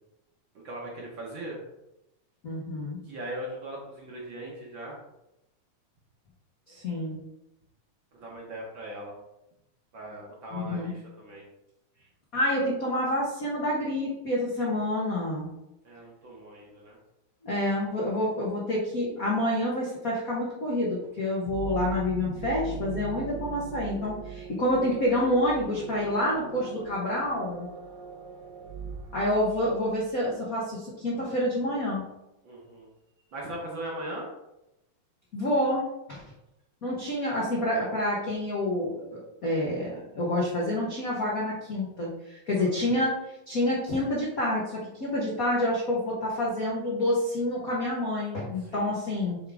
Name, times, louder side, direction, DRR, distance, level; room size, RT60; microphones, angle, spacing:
voice 1, 0.6-1.6 3.1-5.0 8.2-9.2 9.9-11.4 15.8-17.0 32.4-32.9 33.3-34.3 48.7-48.9, right 1 dB, 55° right, -3 dB, 1.5 m, -39 dB
voice 2, 2.4-3.0 6.7-7.2 10.5-10.9 12.3-15.5 17.4-27.7 29.1-32.1 35.3-36.2 36.8-49.4, left 1 dB, 75° left, -5 dB, 0.8 m, -28 dB
sound 1, 21.5-30.1, right 6 dB, 85° right, 2.2 m, -40 dB
8.5 x 3.7 x 3.5 m, 0.89 s
omnidirectional pair, 3.5 m